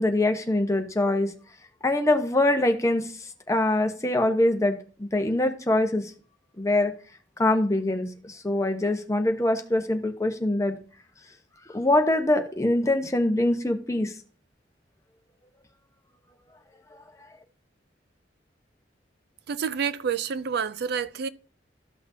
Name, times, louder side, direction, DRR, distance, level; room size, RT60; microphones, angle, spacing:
voice 1, 0.0-1.3 1.8-3.1 3.5-6.1 6.6-6.9 7.4-10.8 11.7-14.1 16.9-17.0, left 1 dB, 15° left, 0.9 m, -24 dB
voice 2, 19.5-21.3, right 6 dB, 60° right, 0.4 m, -28 dB
13.5 x 5.9 x 2.7 m
head